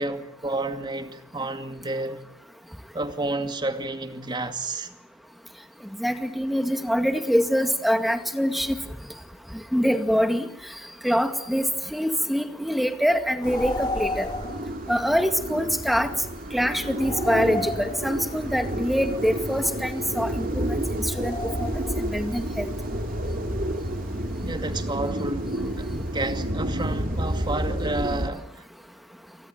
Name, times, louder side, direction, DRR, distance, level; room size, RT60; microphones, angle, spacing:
voice 1, 0.0-2.2 2.9-4.9 24.4-28.6, right 2 dB, 25° right, 7 dB, 2.3 m, -31 dB
voice 2, 6.0-8.8 9.7-10.5 11.0-14.3 14.9-16.1 16.5-22.7, equal, ahead, 7 dB, 2.1 m, -24 dB
sound 1, 13.4-14.7 17.0-18.4 21.1-22.2, left 2 dB, 20° left, 2.4 m, -33 dB
sound 2, 13.4-28.3, right 1 dB, 45° right, 3.2 m, -30 dB
29.0 x 24.0 x 7.9 m, 0.73 s
head